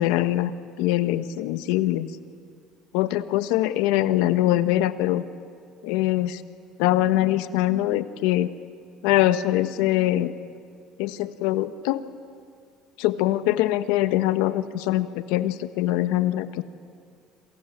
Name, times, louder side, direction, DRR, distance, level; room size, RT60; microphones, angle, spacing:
voice 1, 0.0-2.1 2.9-5.2 5.8-6.4 6.8-8.5 9.0-10.3 11.0-12.0 13.0-16.6, left 14 dB, 85° left, 11 dB, 1.2 m, -23 dB
27.5 x 27.5 x 7.4 m, 2.2 s
cardioid pair, 110°, 0 cm